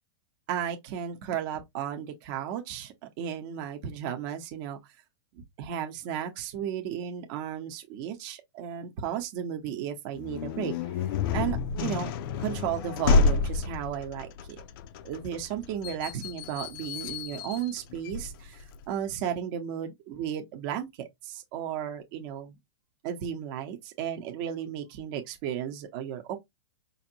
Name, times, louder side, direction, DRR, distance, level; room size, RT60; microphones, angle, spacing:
voice 1, 0.5-4.8 5.6-10.7 11.3-12.1 12.4-14.6 15.0-22.6 23.0-26.4, right 9 dB, 40° right, 0.9 m, -34 dB
sound 1, 10.2-18.8, left 4 dB, 45° left, 0.4 m, -29 dB
5.0 x 2.6 x 2.7 m
supercardioid pair, 150°, 16 cm